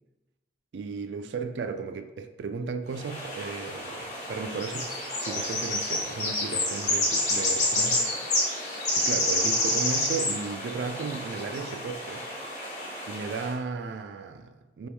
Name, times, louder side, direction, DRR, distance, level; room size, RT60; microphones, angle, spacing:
voice 1, 0.7-8.1 9.0-12.2 13.1-14.9, right 5 dB, 85° right, 0.3 m, -35 dB
sound 1, 3.0-13.5, left 1 dB, 40° left, 1.1 m, -29 dB
3.4 x 3.0 x 4.5 m
head